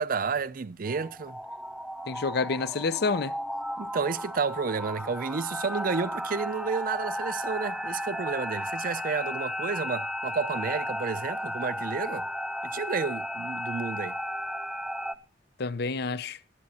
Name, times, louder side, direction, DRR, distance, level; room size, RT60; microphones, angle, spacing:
voice 1, 0.0-1.4 3.8-12.3 12.6-14.2, right 5 dB, 50° right, 0.6 m, -31 dB
sound 1, 0.8-15.2, equal, ahead, 0.6 m, -34 dB
voice 2, 2.1-3.4 15.6-16.4, left 4 dB, 60° left, 0.6 m, -28 dB
21.5 x 7.7 x 4.2 m
head